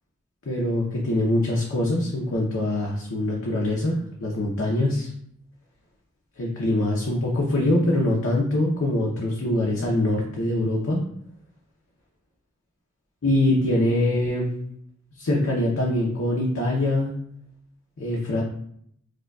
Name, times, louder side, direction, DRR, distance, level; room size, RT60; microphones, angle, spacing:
voice 1, 0.5-5.1 6.4-11.0 13.2-14.5 15.2-17.2 18.0-18.4, left 1 dB, 70° left, -3 dB, 0.6 m, -23 dB
4.8 x 2.2 x 2.3 m, 0.68 s
head